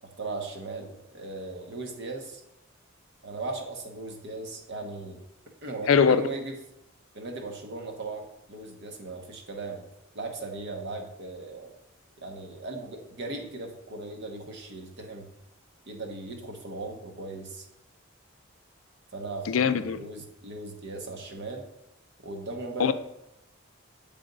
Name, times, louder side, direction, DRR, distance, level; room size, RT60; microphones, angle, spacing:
voice 1, 0.0-2.4 3.2-5.2 5.6-6.5 7.1-9.8 10.1-11.7 12.2-15.3 15.9-17.7 19.1-21.6 22.2-22.9, right 2 dB, 60° right, 1.0 m, -38 dB
voice 2, 5.9-6.2 19.5-20.0 22.8-22.9, left 6 dB, 80° left, 0.4 m, -21 dB
8.8 x 3.4 x 3.9 m
head